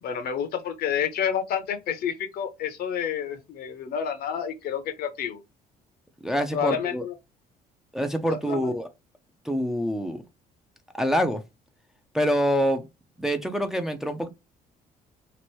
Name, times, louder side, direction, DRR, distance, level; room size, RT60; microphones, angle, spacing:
voice 1, 0.0-5.4 6.5-7.1 8.3-8.8, left 8 dB, 65° left, 0.8 m, -29 dB
voice 2, 6.2-7.0 7.9-8.9 9.4-10.2 10.9-11.4 12.1-12.8 13.2-14.3, equal, 5° right, 0.4 m, -25 dB
3.0 x 2.5 x 3.0 m
cardioid pair, 110°, 17 cm